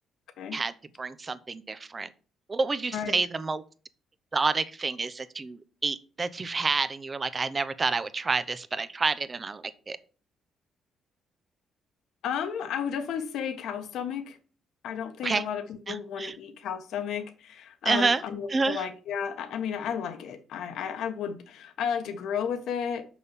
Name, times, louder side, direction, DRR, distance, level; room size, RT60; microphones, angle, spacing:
voice 1, 0.5-2.1 2.5-3.6 4.3-10.0 15.2-15.4 15.9-16.4 17.8-18.2 18.5-18.8, right 4 dB, 30° right, 0.8 m, -29 dB
voice 2, 2.9-3.2 12.2-14.4 14.8-23.1, left 7 dB, 80° left, 1.3 m, -33 dB
6.3 x 5.4 x 7.1 m
cardioid pair, 90°, 0 cm